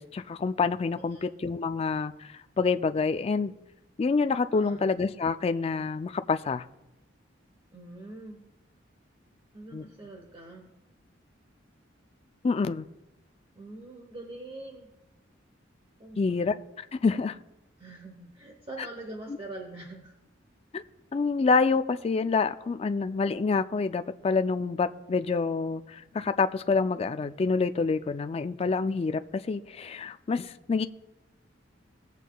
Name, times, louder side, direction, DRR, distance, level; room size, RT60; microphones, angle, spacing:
voice 1, 0.0-2.1 2.6-3.5 4.0-6.6 9.7-9.8 12.4-12.9 16.2-16.5 16.9-17.4 19.3-19.4 20.7-20.8 21.1-30.9, left 4 dB, 30° left, 0.3 m, -27 dB
voice 2, 0.9-1.3 4.5-4.9 7.7-8.4 9.5-10.7 13.6-14.9 16.0-16.5 17.8-20.1, right 2 dB, 30° right, 0.9 m, -44 dB
17.0 x 8.2 x 2.3 m
head